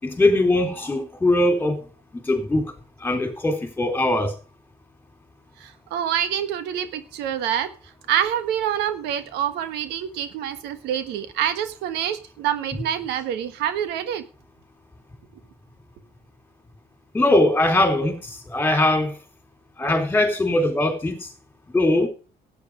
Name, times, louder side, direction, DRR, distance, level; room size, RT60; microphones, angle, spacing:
voice 1, 0.0-1.8 2.2-2.6 3.0-4.3 17.1-19.2 19.8-21.3 21.7-22.1, left 1 dB, 10° left, 4.0 m, -21 dB
voice 2, 5.6-7.7 8.1-14.2, right 10 dB, 90° right, 1.4 m, -26 dB
13.0 x 9.4 x 5.0 m
cardioid pair, 110°, 17 cm